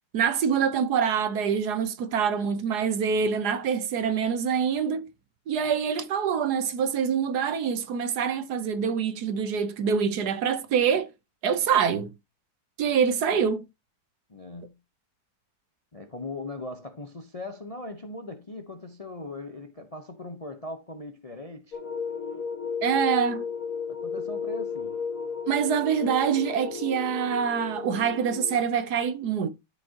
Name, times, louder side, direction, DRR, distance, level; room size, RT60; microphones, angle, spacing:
voice 1, 0.1-5.1 5.5-11.1 11.4-12.1 12.8-13.6 22.8-23.5 25.5-29.5, right 7 dB, 65° right, 1.3 m, -25 dB
voice 2, 14.3-14.8 15.9-21.8 23.9-25.0, left 2 dB, 30° left, 0.6 m, -39 dB
sound 1, 21.7-28.6, left 6 dB, 50° left, 2.0 m, -34 dB
13.0 x 5.3 x 2.8 m
omnidirectional pair, 1.9 m